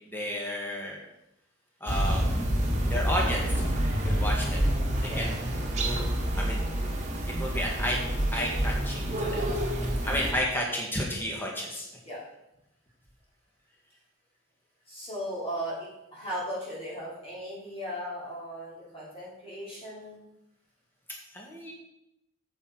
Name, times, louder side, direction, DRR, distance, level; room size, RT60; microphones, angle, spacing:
voice 1, 0.1-1.0 1.8-2.3 2.8-4.7 5.0-5.4 5.7-6.0 6.3-6.6 7.3-8.0 8.3-9.4 10.0-11.9 21.3-21.7, equal, 10° left, -2 dB, 1.7 m, -32 dB
sound 1, 1.9-10.3, right 1 dB, 35° right, 1.7 m, -28 dB
voice 2, 5.0-5.4 12.0-12.2 14.8-20.2, equal, 25° left, -7 dB, 3.3 m, -37 dB
8.7 x 8.0 x 4.5 m, 0.87 s
head